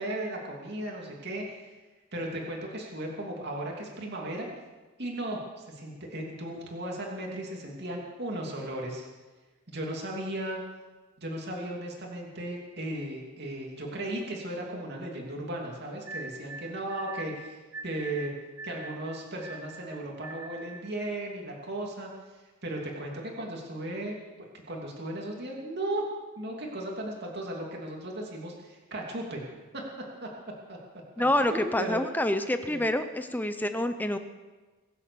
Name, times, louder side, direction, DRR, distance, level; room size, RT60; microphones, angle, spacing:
voice 1, 0.0-1.7 2.1-4.5 5.0-9.1 9.7-10.6 11.2-17.6 17.8-18.3 18.6-24.2 24.7-26.0 26.4-29.4 29.7-29.8 30.2-30.3 30.7-30.8 31.2-32.0 32.7-32.8, right 1 dB, 50° right, -1 dB, 2.8 m, -36 dB
sound 1, 16.0-20.9, right 2 dB, 70° right, 1.5 m, -43 dB
voice 2, 31.2-34.2, left 1 dB, 10° left, 9 dB, 0.7 m, -27 dB
23.5 x 8.4 x 7.0 m, 1.3 s
head